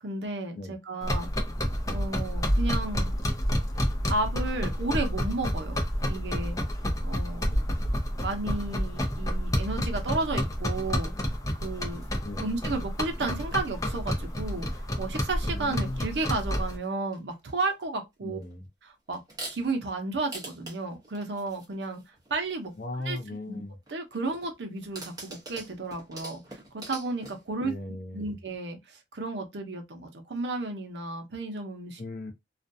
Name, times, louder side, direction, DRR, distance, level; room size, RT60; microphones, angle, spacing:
voice 1, 0.0-1.3 1.9-3.2 4.1-6.6 7.0-7.7 8.2-11.1 11.6-12.0 12.4-18.4 18.8-19.2 19.5-22.0 22.3-22.7 23.0-23.2 23.5-23.6 23.9-26.4 26.9-27.7 28.1-32.0, right 3 dB, 70° right, 0.7 m, -33 dB
sound 1, 1.0-16.8, equal, 20° left, 0.6 m, -29 dB
sound 2, 11.4-12.5 13.0-15.5 15.7-16.9 17.1-17.8 18.4-18.5 19.1-19.8 20.3-23.2 23.9-27.5, right 2 dB, 20° right, 0.8 m, -46 dB
voice 2, 15.5-16.1 18.2-18.7 22.8-23.7 27.6-28.4 32.0-32.3, left 2 dB, 55° left, 0.7 m, -37 dB
2.4 x 2.2 x 2.6 m
head